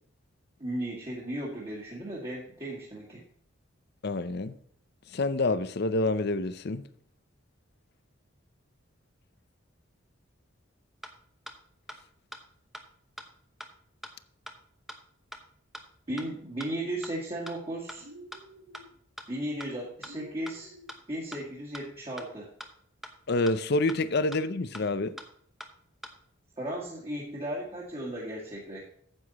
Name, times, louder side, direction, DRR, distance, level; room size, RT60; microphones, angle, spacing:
voice 1, 0.6-3.2 16.1-18.1 19.3-20.7 21.1-22.5 26.6-28.8, right 1 dB, 30° right, 2.0 m, -35 dB
voice 2, 4.0-4.6 5.1-6.8 23.3-25.1, left 2 dB, 55° left, 0.6 m, -27 dB
sound 1, 11.0-11.1 11.5-11.6 11.9-12.0 12.3-12.4 12.7-12.8 13.2-13.3 13.6-13.7 14.0-14.1 14.5-14.6 14.9-15.0 15.3-15.4 15.7-15.8 16.2-16.3 16.6-16.7 17.0-17.1 17.5-17.6 17.9-18.0 18.3-18.4 18.7-18.8 19.2-19.3 19.6-19.7 20.0-20.1 20.5-20.6 20.9-21.0 21.3-21.4 21.7-21.8 22.2-22.3 22.6-22.7 23.0-23.1 23.5-23.6 23.9-24.0 24.3-24.4 24.7-24.8 25.2-25.3 25.6-25.7 26.0-26.1, equal, ahead, 0.8 m, -42 dB
sound 2, 18.0-18.9 20.0-21.0, right 1 dB, 65° right, 1.0 m, -50 dB
9.7 x 8.1 x 4.2 m
head